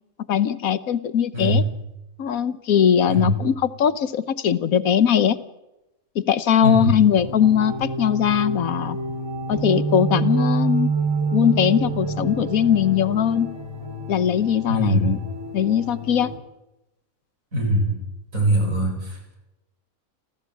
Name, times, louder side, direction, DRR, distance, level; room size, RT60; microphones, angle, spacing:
voice 1, 0.3-1.6 2.2-5.4 6.1-9.0 9.5-10.9 11.3-13.5 14.1-15.2 15.5-16.3, left 9 dB, 80° left, 14 dB, 1.4 m, -20 dB
voice 2, 1.3-1.7 3.1-3.4 6.6-7.0 14.7-15.2 17.5-18.0 18.3-19.3, right 1 dB, 70° right, 2 dB, 7.2 m, -22 dB
sound 1, 7.2-16.4, right 4 dB, 15° right, 3.5 m, -28 dB
29.5 x 13.0 x 8.4 m, 0.96 s
omnidirectional pair, 1.5 m